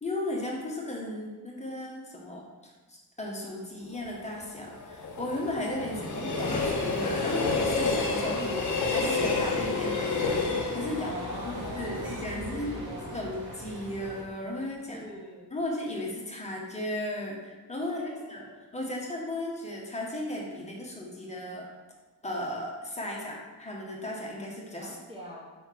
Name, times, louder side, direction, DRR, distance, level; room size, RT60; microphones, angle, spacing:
voice 1, 0.0-10.4 10.7-11.1 11.4-12.7 13.1-15.0 15.5-18.0 18.3-18.4 18.7-21.7 22.2-25.0, left 1 dB, 15° left, -2 dB, 1.0 m, -35 dB
Train, 4.0-13.0 13.4-13.5, left 3 dB, 45° left, 1.0 m, -30 dB
voice 2, 5.8-6.6 11.0-13.2 14.9-15.5 17.8-18.6 24.8-25.5, equal, 15° right, -4 dB, 0.7 m, -44 dB
sound 1, 6.8-14.2, equal, 65° right, 1.7 m, -42 dB
4.6 x 4.4 x 5.7 m, 1.2 s
wide cardioid pair, 165°, 40 cm